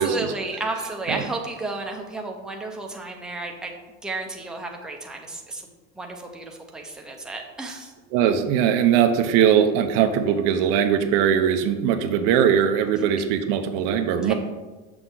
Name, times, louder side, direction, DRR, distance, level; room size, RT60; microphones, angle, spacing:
voice 1, 0.0-3.7 4.0-5.6 6.0-6.4 6.7-7.9 14.2-14.3, right 2 dB, ahead, 1 dB, 0.8 m, -32 dB
voice 2, 8.1-14.3, right 8 dB, 70° right, 8 dB, 0.8 m, -20 dB
6.9 x 6.2 x 3.9 m, 1.2 s
cardioid pair, 140°, 33 cm